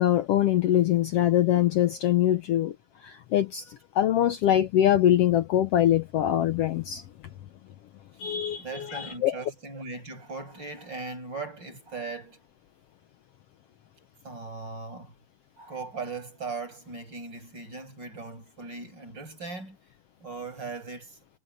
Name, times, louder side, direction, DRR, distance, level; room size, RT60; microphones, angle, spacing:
voice 1, 0.0-2.7 3.0-7.0 8.2-9.3, left 12 dB, 70° left, 1.6 m, -23 dB
voice 2, 8.2-12.4 14.2-15.1 15.6-19.8 20.2-21.2, right 4 dB, 35° right, 8.3 m, -39 dB
omnidirectional pair, 3.3 m